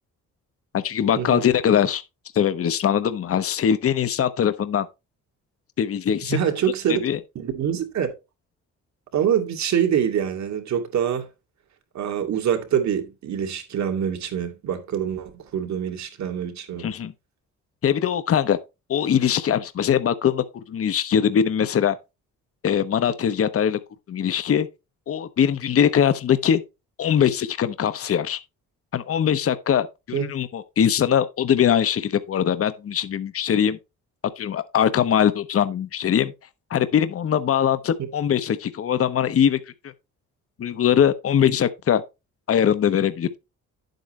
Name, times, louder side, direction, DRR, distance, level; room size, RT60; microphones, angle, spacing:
voice 1, 0.7-2.0 2.3-4.9 5.8-6.4 6.9-7.2 16.8-17.1 17.8-18.6 18.9-22.0 22.6-23.8 24.1-24.7 25.1-26.6 27.0-28.4 28.9-33.8 34.4-36.3 36.7-39.6 40.6-42.0 42.5-43.4, left 9 dB, 50° left, 1.0 m, -21 dB
voice 2, 6.2-7.0 7.3-8.1 9.1-11.3 11.9-17.0 30.1-30.3, right 9 dB, 65° right, 2.6 m, -25 dB
10.0 x 8.0 x 3.2 m
cardioid pair, 90°, 30 cm